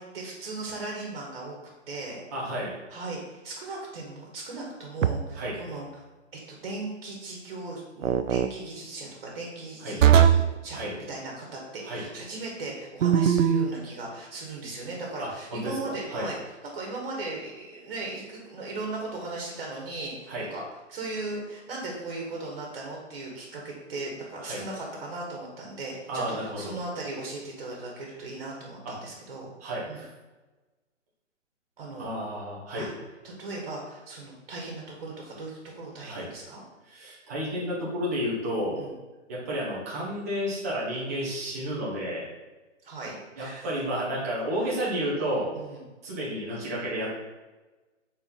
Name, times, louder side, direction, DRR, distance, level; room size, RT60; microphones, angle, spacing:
voice 1, 0.0-1.6 1.9-2.2 2.9-6.0 6.3-10.8 11.1-16.4 16.7-20.6 20.9-29.5 29.9-30.0 31.8-32.1 32.7-32.9 33.2-36.6 38.8-39.0 42.8-43.7 45.5-45.9, right 2 dB, 45° right, -2 dB, 1.4 m, -37 dB
voice 2, 2.3-2.7 5.4-5.5 9.8-10.0 10.7-10.9 11.8-12.0 15.2-15.8 16.1-16.3 20.3-20.5 24.4-24.6 26.1-26.8 28.8-28.9 29.6-30.1 32.0-32.9 36.0-36.3 36.9-38.8 39.3-42.2 43.4-45.5 46.0-47.1, equal, 15° right, -6 dB, 0.6 m, -31 dB
sound 1, 5.0-5.5 8.0-8.5 10.0-10.5 13.0-13.7, right 9 dB, 85° right, 0.5 m, -20 dB
4.3 x 4.2 x 5.1 m, 1.2 s
hypercardioid pair, 165°, 37 cm